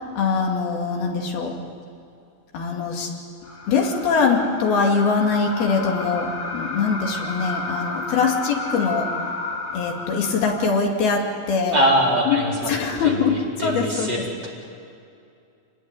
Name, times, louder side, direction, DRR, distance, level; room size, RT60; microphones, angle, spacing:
voice 1, 0.0-1.6 2.5-3.1 3.7-9.1 9.7-11.8 12.3-12.4 12.7-13.4 13.6-14.2, left 5 dB, 80° left, 1 dB, 4.4 m, -22 dB
sound 1, 3.4-10.8, left 2 dB, 55° left, 4.8 m, -32 dB
voice 2, 11.7-12.7 13.0-14.5, equal, 25° right, -1 dB, 4.6 m, -23 dB
28.5 x 20.0 x 9.8 m, 2.5 s
omnidirectional pair, 4.4 m